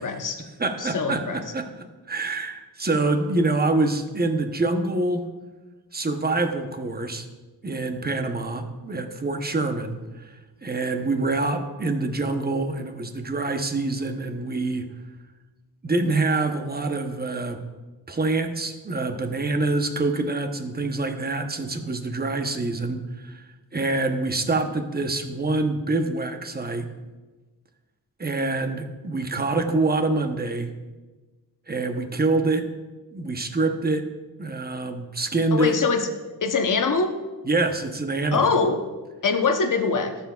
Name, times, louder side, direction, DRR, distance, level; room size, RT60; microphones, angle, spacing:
voice 1, 0.0-0.4 0.8-1.4 35.5-36.1 36.4-37.1 38.3-38.8 39.2-40.2, left 4 dB, 50° left, 6 dB, 1.0 m, -23 dB
voice 2, 0.6-1.7 2.1-5.3 5.9-7.3 7.6-10.3 10.6-14.9 15.8-17.6 18.1-23.4 23.7-26.9 28.2-30.7 31.7-32.7 33.1-34.0 34.4-35.7 37.4-38.5, right 2 dB, 25° right, 6 dB, 0.9 m, -25 dB
12.5 x 7.1 x 2.4 m, 1.2 s
cardioid pair, 80°, 39 cm